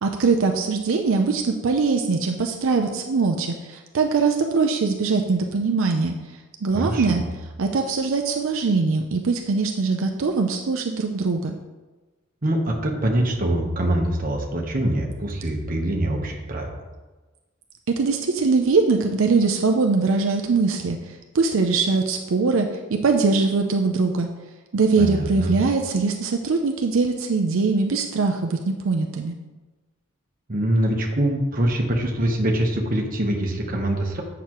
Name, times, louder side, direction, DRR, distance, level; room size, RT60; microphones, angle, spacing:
voice 1, 0.0-6.1 6.6-7.2 7.6-11.5 17.9-21.0 21.3-22.7 23.0-24.3 24.7-29.3, right 4 dB, 80° right, 3 dB, 0.5 m, -22 dB
voice 2, 6.7-7.2 12.4-16.8 25.0-25.5 30.5-34.2, right 1 dB, 40° right, 1 dB, 1.0 m, -24 dB
8.3 x 6.0 x 3.0 m, 1.2 s
head